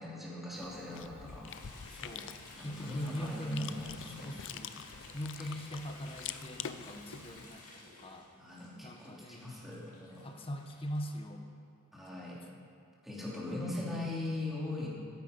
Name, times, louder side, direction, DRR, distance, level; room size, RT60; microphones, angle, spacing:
voice 1, 0.0-1.5 2.5-4.3 5.4-5.5 8.4-10.3 11.9-12.4 13.0-14.9, left 2 dB, ahead, -7 dB, 3.1 m, -40 dB
Chewing mastication, 0.5-7.5, left 8 dB, 60° left, 0.5 m, -46 dB
sound 1, 1.5-11.2, left 2 dB, 85° left, 2.9 m, -54 dB
voice 2, 1.9-2.4 2.6-4.8 5.1-8.3 8.8-9.6 10.2-11.5, equal, 25° left, 4 dB, 1.0 m, -41 dB
14.0 x 10.5 x 5.4 m, 2.5 s
head